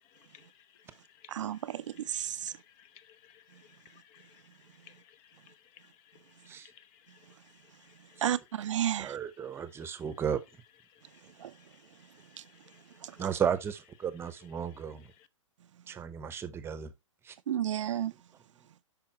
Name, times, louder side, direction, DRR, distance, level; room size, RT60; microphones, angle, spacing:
voice 1, 0.0-8.2 8.8-10.3 10.9-13.4 14.2-15.3, left 10 dB, 35° left, 0.7 m, -61 dB
voice 2, 1.3-2.5 8.2-9.2 11.4-11.5 13.0-13.1 17.5-18.1, right 11 dB, 65° right, 0.5 m, -32 dB
voice 3, 9.0-10.4 13.2-15.0 15.9-16.9 17.3-17.4, right 8 dB, 15° right, 0.8 m, -34 dB
8.6 x 5.6 x 2.8 m
hypercardioid pair, 125°, 17 cm